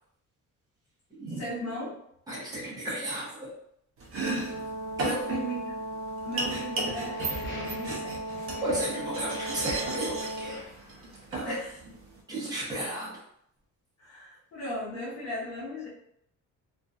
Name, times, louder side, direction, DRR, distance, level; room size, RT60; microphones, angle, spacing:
voice 1, 1.4-1.9 5.0-5.7 6.2-8.4 11.4-11.7 14.0-15.9, equal, 50° left, -5 dB, 1.1 m, -37 dB
voice 2, 2.3-3.5 5.0-5.2 8.6-10.6 11.3-11.6 12.3-13.2, right 1 dB, 10° right, -6 dB, 0.8 m, -33 dB
Domestic sounds home sounds, 4.0-12.2, right 2 dB, 40° right, 0.6 m, -36 dB
Brass instrument, 4.2-10.6, right 1 dB, 70° left, 0.8 m, -37 dB
sound 1, 7.0-11.4, equal, 35° left, 0.9 m, -44 dB
2.8 x 2.5 x 2.4 m, 0.72 s
cardioid pair, 180°, 34 cm